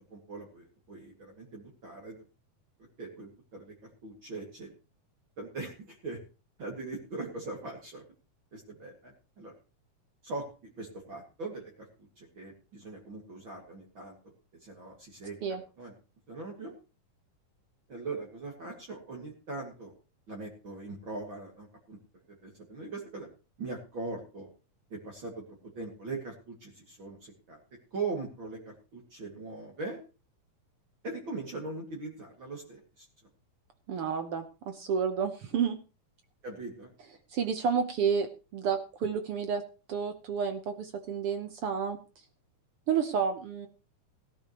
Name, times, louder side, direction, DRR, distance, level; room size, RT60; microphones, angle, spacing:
voice 1, 0.1-2.2 3.0-4.7 5.4-6.2 6.6-8.0 8.5-9.5 10.2-10.4 10.8-11.7 12.2-14.2 14.6-15.9 16.3-16.7 17.9-19.9 20.3-22.0 22.4-23.3 23.6-24.5 24.9-25.4 25.7-27.6 27.9-30.0 31.0-33.1 36.4-36.9, right 3 dB, 40° right, 0 dB, 2.7 m, -40 dB
voice 2, 33.9-35.8 37.3-39.6 39.9-42.0 42.9-43.7, right 6 dB, 65° right, 8 dB, 1.4 m, -30 dB
17.5 x 11.5 x 3.0 m, 0.33 s
omnidirectional pair, 3.7 m